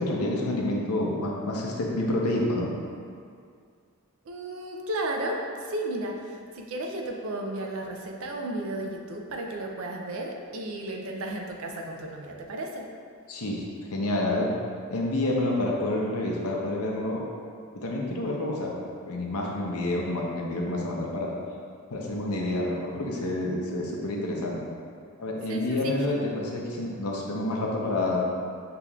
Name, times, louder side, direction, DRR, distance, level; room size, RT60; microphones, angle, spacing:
voice 1, 0.0-2.7 13.3-13.7 13.9-14.5 14.9-17.2 17.7-18.7 19.1-21.3 21.9-24.6 25.2-28.2, left 1 dB, 80° left, -2 dB, 0.7 m, -28 dB
voice 2, 4.3-12.8 25.5-25.9, right 1 dB, 65° right, 1 dB, 0.5 m, -34 dB
6.8 x 2.9 x 2.4 m, 2.2 s
head